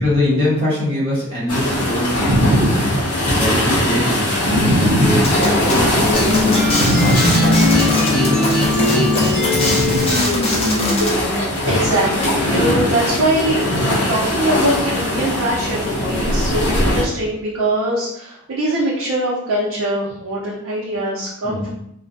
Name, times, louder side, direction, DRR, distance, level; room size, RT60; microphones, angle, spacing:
voice 1, 0.0-2.6 3.3-6.6 7.0-8.4 8.7-9.5 21.4-21.7, left 1 dB, 25° right, -9 dB, 1.0 m, -23 dB
sound 1, 1.5-17.0, left 1 dB, 75° left, 0.8 m, -21 dB
voice 2, 2.2-3.0 4.4-5.3 6.8-7.4 9.5-10.1 11.6-21.7, right 1 dB, 65° right, -6 dB, 0.5 m, -21 dB
sound 2, 5.2-11.2, left 1 dB, 25° left, 0.5 m, -22 dB
sound 3, 6.1-11.2, left 2 dB, 5° left, 0.9 m, -19 dB
2.5 x 2.1 x 2.5 m, 0.78 s
head